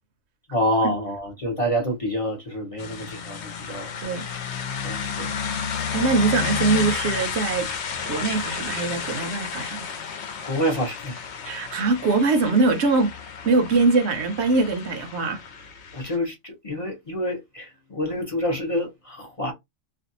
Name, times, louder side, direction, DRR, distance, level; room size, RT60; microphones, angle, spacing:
voice 1, 0.5-3.9 4.8-5.3 10.4-11.3 15.9-19.5, equal, 35° left, 0.6 m, -27 dB
sound 1, 2.8-16.2, left 7 dB, 65° left, 0.9 m, -32 dB
voice 2, 5.9-7.7 8.0-9.9 11.4-13.1 13.4-15.4, right 3 dB, 70° right, 0.8 m, -22 dB
2.5 x 2.2 x 2.7 m
omnidirectional pair, 1.3 m